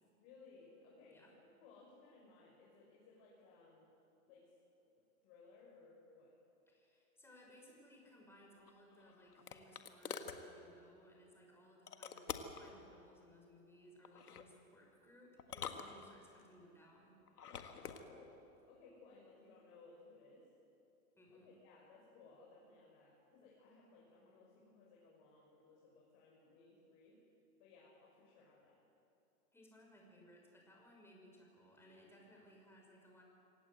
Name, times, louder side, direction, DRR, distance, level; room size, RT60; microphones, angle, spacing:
voice 1, 0.2-3.9 4.3-4.5 5.2-6.3 17.8-18.4 18.7-20.4 21.3-27.2 27.6-28.8, left 3 dB, 45° left, -4 dB, 6.5 m, -62 dB
voice 2, 6.7-17.2 21.2-21.5 29.5-33.2, equal, 5° left, -1 dB, 6.0 m, -62 dB
sound 1, 8.7-10.4 11.9-12.7 14.0-14.5 15.4-16.4 17.3-18.0, left 7 dB, 90° left, 1.9 m, -47 dB
27.0 x 17.0 x 8.1 m, 3.0 s
hypercardioid pair, 125°, 44 cm